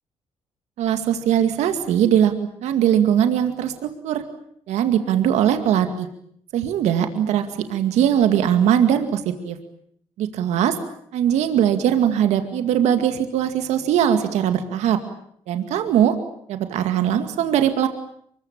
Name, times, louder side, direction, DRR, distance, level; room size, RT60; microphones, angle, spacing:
voice 1, 0.8-2.3 2.6-4.2 4.7-6.1 6.5-9.6 10.2-10.8 11.1-15.0 15.5-16.2 16.5-17.9, right 9 dB, 85° right, 7 dB, 2.2 m, -20 dB
24.5 x 22.5 x 8.8 m, 0.67 s
cardioid pair, 75°, 11 cm